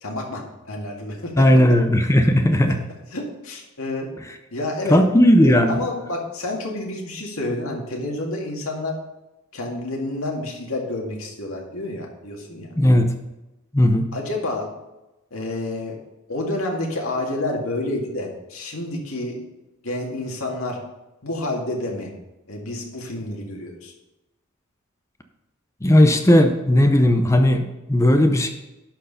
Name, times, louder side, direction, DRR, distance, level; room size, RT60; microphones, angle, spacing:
voice 1, 0.0-1.4 3.1-4.1 4.5-5.0 5.4-9.0 9.5-12.7 14.1-14.7 15.3-16.0 16.3-19.4 19.8-20.8 21.2-22.1 22.5-23.9, left 2 dB, 75° left, 0 dB, 2.0 m, -29 dB
voice 2, 1.4-2.8 4.9-5.8 12.8-13.1 13.7-14.1 25.8-28.5, left 1 dB, 15° left, 6 dB, 0.6 m, -16 dB
11.5 x 4.6 x 5.6 m, 0.98 s
head